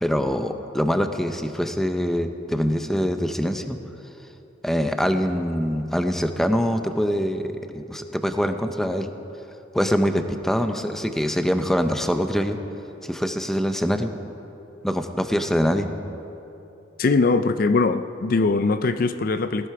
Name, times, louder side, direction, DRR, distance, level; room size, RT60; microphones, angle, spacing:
voice 1, 0.0-3.8 4.6-9.1 9.7-12.6 13.0-14.1 14.8-15.9, equal, ahead, 7 dB, 0.7 m, -24 dB
voice 2, 17.0-19.7, left 3 dB, 50° left, 11 dB, 0.4 m, -21 dB
18.5 x 16.0 x 4.8 m, 3.0 s
head